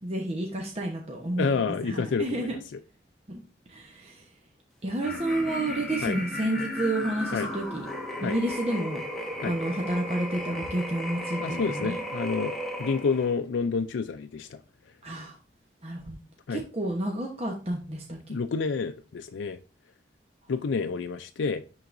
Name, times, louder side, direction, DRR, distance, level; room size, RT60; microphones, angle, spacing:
voice 1, 0.0-2.5 3.3-3.4 3.7-4.2 4.8-7.8 8.2-9.0 9.4-12.0 15.0-15.4 15.8-16.2 16.5-18.4, right 1 dB, 35° right, 1.0 m, -30 dB
voice 2, 1.4-2.6 6.0-6.2 7.3-7.5 8.2-8.4 9.4-9.6 11.4-14.6 16.5-16.6 18.3-19.6 20.5-21.6, left 5 dB, 90° left, 0.4 m, -29 dB
sound 1, 5.0-13.3, left 1 dB, ahead, 1.1 m, -35 dB
10.5 x 3.9 x 2.6 m
head